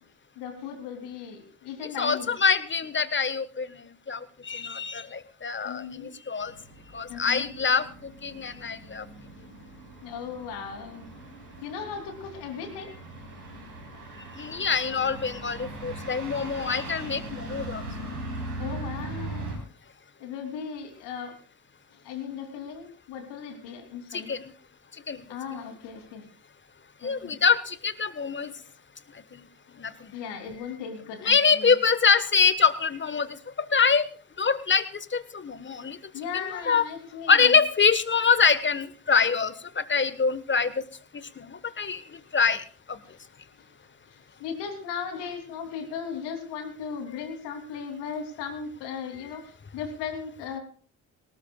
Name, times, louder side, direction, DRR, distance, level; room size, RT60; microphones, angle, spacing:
voice 1, 0.3-2.3 5.6-6.1 7.1-7.5 10.0-11.1 11.6-13.0 13.9-14.1 14.4-14.7 18.6-19.6 20.2-21.4 21.9-24.3 25.3-26.3 27.0-27.4 30.1-31.8 36.1-37.6 41.6-41.7 43.0-43.2 43.6-43.7 44.1-50.6, left 6 dB, 65° left, 5 dB, 3.2 m, -37 dB
voice 2, 2.0-3.8 4.1-6.5 6.9-7.8 8.2-9.0 14.4-17.8 24.1-24.5 25.1-25.2 27.0-28.5 29.3-29.4 29.8-30.1 31.3-33.3 33.7-34.1 34.4-34.8 35.1-36.0 36.7-36.8 37.3-40.7 41.4-42.0 42.3-43.0, left 5 dB, 25° left, 15 dB, 1.4 m, -24 dB
sound 1, 6.4-19.6, right 2 dB, 85° right, 4.9 m, -40 dB
19.0 x 19.0 x 2.4 m, 0.42 s
figure-of-eight pair, 45°, 45 cm